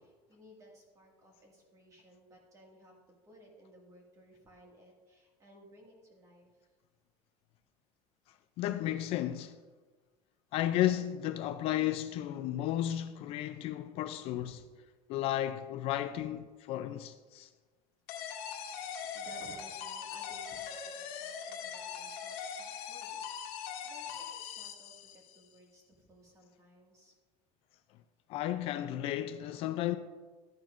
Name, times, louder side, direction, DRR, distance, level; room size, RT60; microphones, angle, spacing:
voice 1, 0.0-3.0 3.2-6.7 14.3-14.6 18.8-27.1, right 1 dB, 25° right, 1.9 m, -58 dB
voice 2, 8.6-9.6 10.5-14.6 15.1-17.5 28.3-30.0, left 12 dB, 45° left, 0.4 m, -33 dB
sound 1, 18.1-25.4, left 7 dB, 80° left, 1.5 m, -41 dB
12.0 x 10.0 x 2.5 m
cardioid pair, 170°, 14 cm